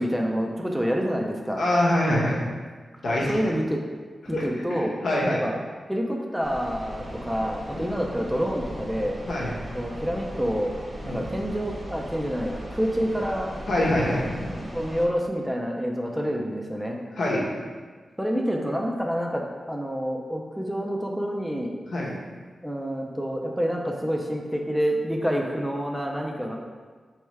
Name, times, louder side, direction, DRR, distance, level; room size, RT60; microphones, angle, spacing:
voice 1, 0.0-1.6 3.3-3.8 4.3-5.5 5.9-9.2 9.7-10.7 11.1-13.6 14.7-17.0 18.2-21.7 22.6-26.6, equal, 5° right, 0 dB, 0.4 m, -28 dB
voice 2, 1.5-2.4 3.0-3.4 4.3-4.4 5.0-5.4 7.7-8.0 9.3-9.6 11.0-11.3 13.7-14.6 17.2-17.5 21.9-22.1 26.5-26.6, left 1 dB, 70° left, -4 dB, 0.9 m, -25 dB
sound 1, 6.4-15.1, equal, 20° right, 0.7 m, -38 dB
3.4 x 3.1 x 4.5 m, 1.5 s
wide cardioid pair, 130°, 0 cm